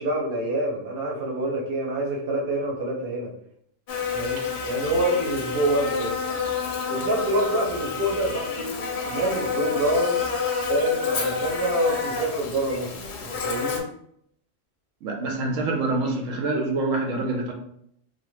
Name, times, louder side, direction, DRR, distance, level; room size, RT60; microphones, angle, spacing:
voice 1, 0.0-3.3 4.1-6.2 6.9-8.7 9.1-10.2 10.7-13.0 13.2-13.8, right 1 dB, 50° right, -2 dB, 0.9 m, -26 dB
Buzz, 3.9-13.8, left 5 dB, 65° left, 0.8 m, -29 dB
voice 2, 15.0-17.5, right 2 dB, 80° right, 1 dB, 1.0 m, -26 dB
2.9 x 2.1 x 3.1 m, 0.69 s
omnidirectional pair, 1.3 m